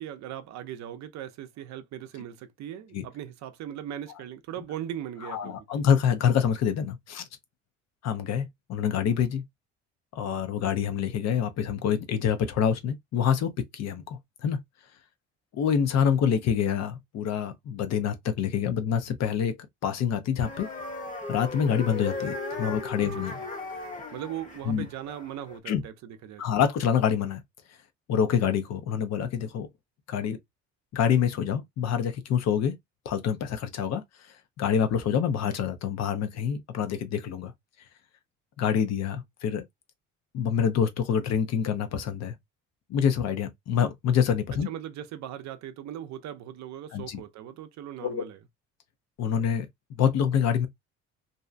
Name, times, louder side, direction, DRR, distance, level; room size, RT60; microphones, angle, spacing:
voice 1, 0.0-5.9 23.3-23.5 24.1-26.6 44.7-48.4, right 11 dB, 60° right, 0.6 m, -39 dB
voice 2, 5.2-7.2 8.0-9.4 10.1-14.6 15.5-19.5 19.8-20.7 21.3-23.4 24.7-24.9 25.7-25.8 26.4-27.4 28.1-29.7 30.1-30.4 30.9-32.7 33.0-34.0 34.6-37.5 38.6-39.6 40.3-42.4 42.9-44.7 46.9-47.2 48.0-48.2 49.2-49.7 50.0-50.7, left 8 dB, 55° left, 0.7 m, -26 dB
sound 1, 20.4-25.6, left 3 dB, 25° left, 1.0 m, -37 dB
2.6 x 2.2 x 2.4 m
cardioid pair, 105°, 31 cm